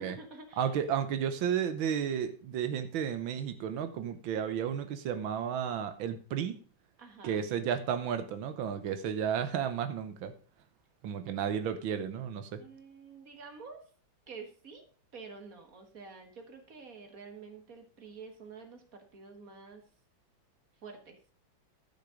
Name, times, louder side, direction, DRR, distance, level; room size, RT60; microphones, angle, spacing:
voice 1, 0.0-0.7 7.0-7.4 12.6-13.8 14.3-14.8 15.1-19.8 20.7-21.2, right 4 dB, 50° right, 5 dB, 1.9 m, -48 dB
voice 2, 0.6-6.6 7.2-10.3 11.0-12.6, right 8 dB, 90° right, 9 dB, 1.7 m, -33 dB
11.5 x 6.5 x 5.0 m, 0.41 s
omnidirectional pair, 2.1 m